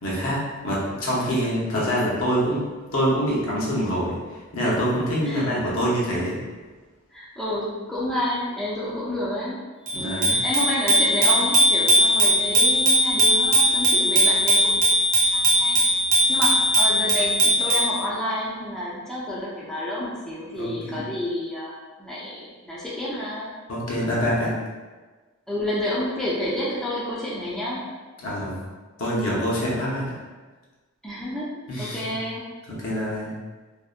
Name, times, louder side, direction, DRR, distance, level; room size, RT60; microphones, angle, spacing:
voice 1, 0.0-2.6 2.9-4.2 4.5-6.4 9.9-10.4 20.6-21.0 23.7-24.6 28.2-28.6 29.0-30.2 31.7-32.2 32.7-33.3, equal, 70° left, -6 dB, 0.8 m, -25 dB
voice 2, 7.1-9.6 9.9-14.8 15.3-15.8 16.3-21.7 22.0-23.5 25.5-27.9 31.0-31.5 31.8-32.4, left 1 dB, 5° left, -8 dB, 0.4 m, -29 dB
Bicycle bell, 9.9-17.9, equal, 75° right, 0.8 m, -19 dB
2.6 x 2.1 x 2.4 m, 1.3 s
head